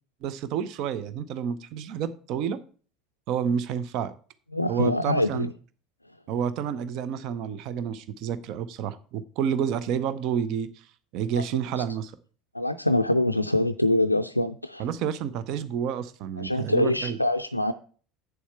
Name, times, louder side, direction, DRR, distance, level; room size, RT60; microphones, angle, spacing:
voice 1, 0.2-2.6 3.3-4.1 4.7-5.5 6.3-10.7 11.1-12.1 14.8-17.2, right 8 dB, 50° right, 14 dB, 0.7 m, -29 dB
voice 2, 4.5-5.5 11.4-11.5 12.5-14.8 16.4-17.7, left 1 dB, 90° left, 7 dB, 0.3 m, -24 dB
8.1 x 7.2 x 4.6 m, 0.40 s
figure-of-eight pair, 65°, 0 cm